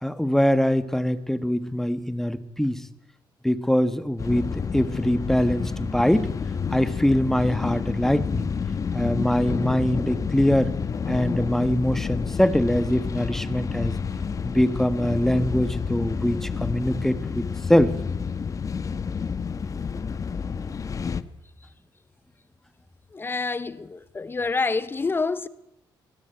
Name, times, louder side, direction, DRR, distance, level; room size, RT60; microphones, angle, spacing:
voice 1, 0.0-2.9 3.4-6.3 6.7-8.5 8.9-10.7 11.1-13.9 14.4-17.4 17.7-17.9, equal, 5° left, 1.5 m, -23 dB
sound 1, 4.2-21.2, left 6 dB, 40° left, 1.2 m, -29 dB
voice 2, 23.1-25.5, left 4 dB, 25° left, 0.9 m, -27 dB
22.5 x 20.0 x 9.1 m
cardioid pair, 105°, 8 cm